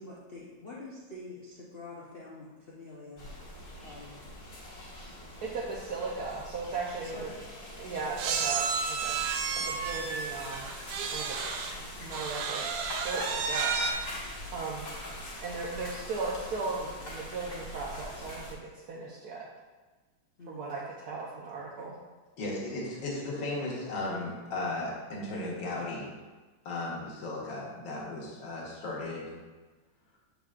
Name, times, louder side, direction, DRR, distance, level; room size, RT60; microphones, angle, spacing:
voice 1, 0.0-3.5 3.8-4.2 7.1-7.3 20.4-20.6 21.7-21.9, left 2 dB, 80° left, -6 dB, 0.5 m, -46 dB
sound 1, 3.2-18.5, left 1 dB, 45° left, 1.4 m, -43 dB
voice 2, 5.4-7.3 7.8-9.2 9.6-10.7 11.0-11.7 12.0-12.6 12.9-14.9 15.4-19.5 20.5-22.0, right 4 dB, 65° right, -4 dB, 1.0 m, -37 dB
sound 2, 6.7-6.8 7.0-7.2 8.2-11.8 12.1-13.9, right 6 dB, 80° right, 1.4 m, -32 dB
voice 3, 22.4-26.1 26.7-29.4, left 2 dB, 65° left, -4 dB, 2.0 m, -35 dB
7.0 x 5.6 x 2.4 m, 1.3 s
omnidirectional pair, 2.3 m